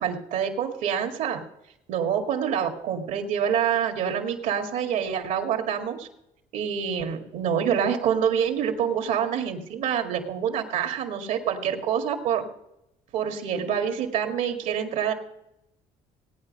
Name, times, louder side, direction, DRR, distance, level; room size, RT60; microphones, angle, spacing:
voice 1, 0.0-1.4 1.9-6.1 6.5-12.4 13.1-15.1, right 8 dB, 80° right, 4 dB, 2.1 m, -26 dB
17.5 x 9.4 x 5.4 m, 0.85 s
cardioid pair, 100°, 14 cm